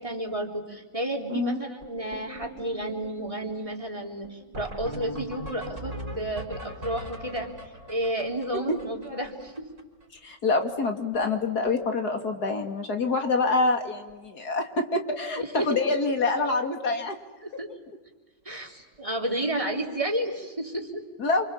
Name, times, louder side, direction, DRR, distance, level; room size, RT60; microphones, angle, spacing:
voice 1, 0.0-7.5 7.9-9.7 15.4-15.7 17.4-17.7 18.5-21.0, right 1 dB, 20° right, 1 dB, 3.8 m, -31 dB
sound 1, 1.8-10.0 10.3-10.4 10.6-10.9 11.1-11.7 12.0-12.2 13.0-13.1 13.6-13.7 13.9-14.1 16.4-16.5 18.8-18.9, equal, 45° right, 5.0 m, -41 dB
voice 2, 10.2-17.2 21.2-21.5, left 3 dB, 60° left, 5 dB, 3.0 m, -26 dB
29.5 x 27.0 x 7.4 m, 1.3 s
omnidirectional pair, 1.9 m